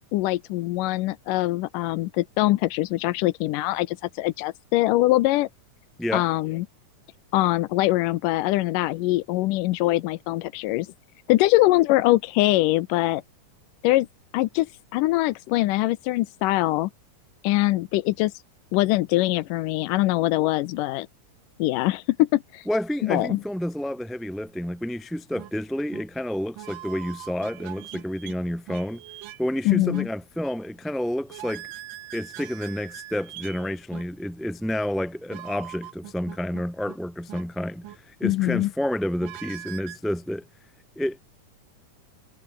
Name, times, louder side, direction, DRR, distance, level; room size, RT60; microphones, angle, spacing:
voice 1, 0.1-5.5 6.1-6.7 7.3-10.9 11.3-13.2 13.8-14.1 14.3-16.9 17.4-18.4 18.7-21.1 21.6-22.7 23.0-23.4 29.7-30.1 38.2-38.7, left 18 dB, 90° left, 2.3 m, -23 dB
voice 2, 22.7-29.0 29.4-31.7 32.1-40.4 40.9-41.2, left 1 dB, ahead, 0.8 m, -29 dB
sound 1, 25.4-25.5 25.9-26.0 26.6-28.4 28.7-29.4 29.9-30.1 31.3-34.0 35.3-37.0 37.3-37.4 37.8-38.0 39.2-40.0, right 15 dB, 85° right, 2.7 m, -41 dB
omnidirectional pair, 3.7 m